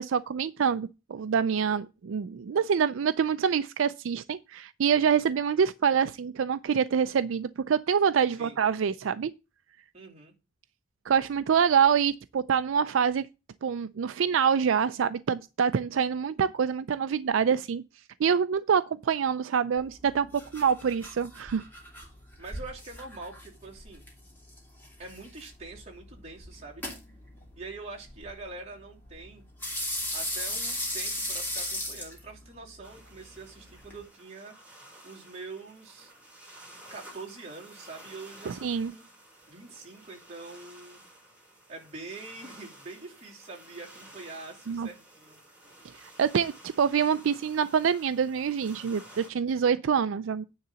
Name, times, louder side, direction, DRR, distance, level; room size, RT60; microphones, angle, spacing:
voice 1, 0.0-9.3 11.1-13.3 13.6-17.8 18.2-21.6 38.5-38.9 44.7-44.9 46.0-50.4, right 7 dB, 75° right, 0.4 m, -26 dB
voice 2, 9.9-10.3 22.4-24.0 25.0-26.8 27.6-29.4 30.1-34.5 35.0-36.1 36.9-39.0 39.5-41.0 41.7-45.4, right 3 dB, 35° right, 2.8 m, -44 dB
sound 1, 19.8-34.0, left 1 dB, 10° left, 2.6 m, -38 dB
sound 2, 32.8-49.3, right 1 dB, 5° right, 2.8 m, -52 dB
9.5 x 3.8 x 6.9 m
head